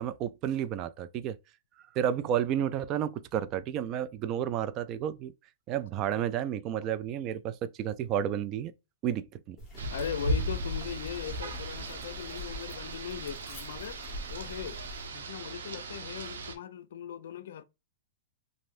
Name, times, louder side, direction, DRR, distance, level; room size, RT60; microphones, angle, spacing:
voice 1, 0.0-1.4 1.9-5.3 5.7-8.7 9.0-9.6, right 10 dB, 35° right, 0.3 m, -31 dB
sound 1, 9.6-15.1, equal, 20° left, 1.1 m, -45 dB
Rain, 9.8-16.6, right 1 dB, 85° right, 0.7 m, -37 dB
voice 2, 9.9-14.0 14.3-14.8 15.1-17.6, left 9 dB, 75° left, 0.4 m, -39 dB
3.1 x 2.6 x 2.5 m
hypercardioid pair, 140°, 0 cm